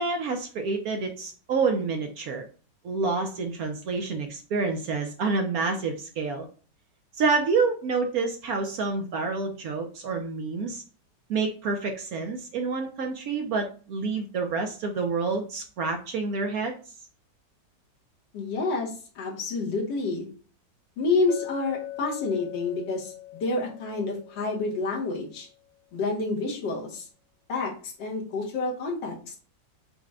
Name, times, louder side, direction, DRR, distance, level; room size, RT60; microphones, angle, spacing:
voice 1, 0.0-2.5 2.8-6.5 7.2-10.8 11.3-16.8, right 4 dB, 70° right, 4 dB, 0.9 m, -28 dB
voice 2, 18.3-20.3 21.0-25.5 25.9-27.1 27.5-29.3, left 3 dB, 80° left, -2 dB, 1.8 m, -29 dB
Chink clink, 21.3-25.3, left 13 dB, 60° left, 1.1 m, -41 dB
4.8 x 2.1 x 4.6 m, 0.39 s
omnidirectional pair, 1.9 m